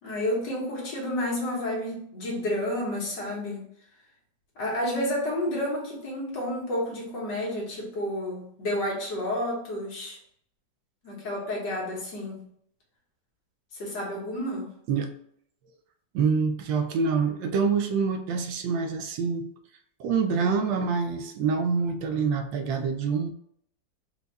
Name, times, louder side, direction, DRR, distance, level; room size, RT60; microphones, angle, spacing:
voice 1, 0.0-3.6 4.6-10.2 11.0-12.5 13.8-14.7, left 1 dB, 65° left, -3 dB, 1.9 m, -30 dB
voice 2, 16.1-19.5 20.0-23.3, right 5 dB, 80° right, 7 dB, 1.3 m, -26 dB
4.6 x 2.3 x 4.0 m, 0.68 s
omnidirectional pair, 2.0 m